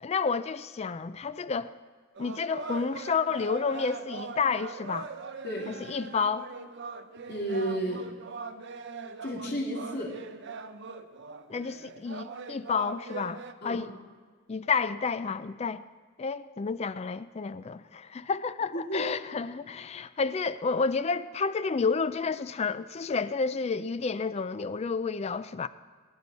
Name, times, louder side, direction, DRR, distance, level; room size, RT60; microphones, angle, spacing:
voice 1, 0.0-1.7 2.2-5.1 5.7-6.5 11.5-13.9 14.5-15.8 16.2-25.7, left 5 dB, 30° left, 0.3 m, -30 dB
sound 1, 2.2-13.5, right 4 dB, 55° right, 0.7 m, -41 dB
voice 2, 7.3-8.1 9.2-10.1 13.6-13.8 18.7-19.0, right 1 dB, 50° left, 3.0 m, -32 dB
20.5 x 10.5 x 4.2 m
head